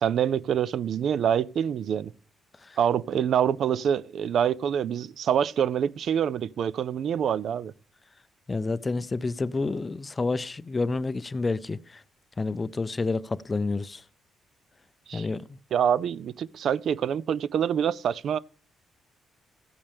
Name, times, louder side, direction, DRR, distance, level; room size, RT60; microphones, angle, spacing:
voice 1, 0.0-2.1 2.8-7.7 15.1-15.3 15.7-18.4, right 8 dB, 65° right, 0.4 m, -26 dB
voice 2, 8.5-12.0 12.4-14.0 15.1-15.6, left 3 dB, 25° left, 0.5 m, -29 dB
15.0 x 8.7 x 3.4 m
cardioid pair, 90°, 0 cm